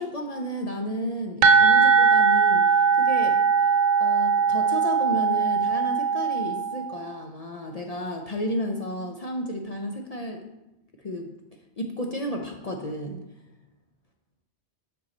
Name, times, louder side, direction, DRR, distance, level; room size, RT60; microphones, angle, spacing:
voice 1, 0.0-10.4 11.0-11.3 11.8-13.2, equal, 45° left, 2 dB, 0.6 m, -32 dB
sound 1, 1.4-7.0, right 5 dB, 60° right, 0.5 m, -20 dB
5.5 x 5.4 x 4.1 m, 0.95 s
omnidirectional pair, 1.2 m